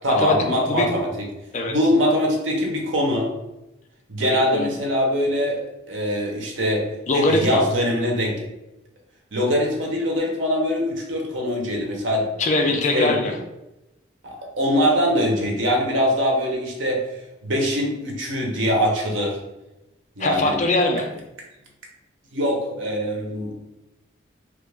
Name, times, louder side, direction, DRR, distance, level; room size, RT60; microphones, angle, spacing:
voice 1, 0.0-1.3 1.7-3.3 4.1-5.6 5.9-6.8 7.1-8.5 9.3-12.3 12.9-13.2 14.2-17.0 17.4-19.4 20.2-20.6 22.3-23.6, equal, 80° right, 0 dB, 0.8 m, -22 dB
voice 2, 4.2-4.7 7.1-7.6 12.4-13.4 20.2-21.1, left 2 dB, 35° left, 3 dB, 0.4 m, -22 dB
3.1 x 2.4 x 3.3 m, 0.96 s
head